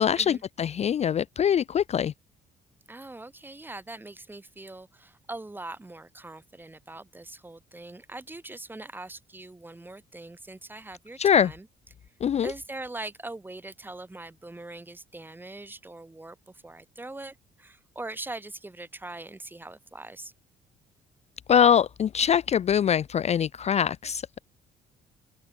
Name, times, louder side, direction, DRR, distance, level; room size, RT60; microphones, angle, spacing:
voice 1, 0.0-2.1 11.2-11.5 12.2-12.5 21.5-24.4, left 8 dB, 40° left, 0.5 m, -23 dB
voice 2, 2.9-11.7 12.4-20.3, right 2 dB, 10° right, 2.9 m, -42 dB
open air
cardioid pair, 135°, 18 cm